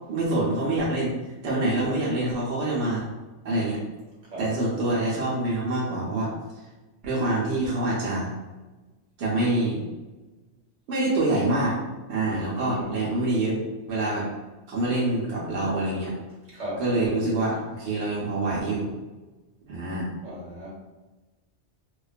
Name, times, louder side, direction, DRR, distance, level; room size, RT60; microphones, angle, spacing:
voice 1, 0.1-3.1 3.4-3.8 4.4-6.3 7.0-8.3 9.2-9.8 10.9-11.8 12.1-14.3 14.7-16.1 16.8-18.9 19.7-20.1, right 2 dB, 70° right, -5 dB, 0.9 m, -26 dB
voice 2, 12.5-13.0 16.5-16.8 20.2-20.7, equal, 85° right, -5 dB, 1.2 m, -36 dB
2.3 x 2.2 x 2.4 m, 1.2 s
omnidirectional pair, 1.2 m